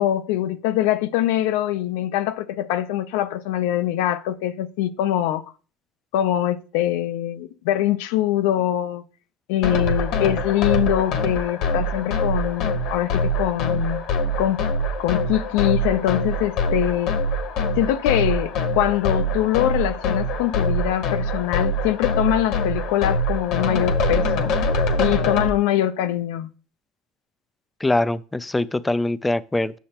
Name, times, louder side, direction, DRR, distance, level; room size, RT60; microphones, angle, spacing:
voice 1, 0.0-5.5 6.1-9.0 9.5-14.0 14.4-14.6 15.0-17.2 17.8-24.5 25.0-26.5, left 13 dB, 80° left, 0.6 m, -23 dB
sound 1, 9.6-25.5, left 1 dB, 60° left, 1.1 m, -24 dB
voice 2, 27.8-29.8, left 2 dB, 10° left, 0.4 m, -23 dB
8.2 x 6.4 x 2.9 m
supercardioid pair, 110°, 0 cm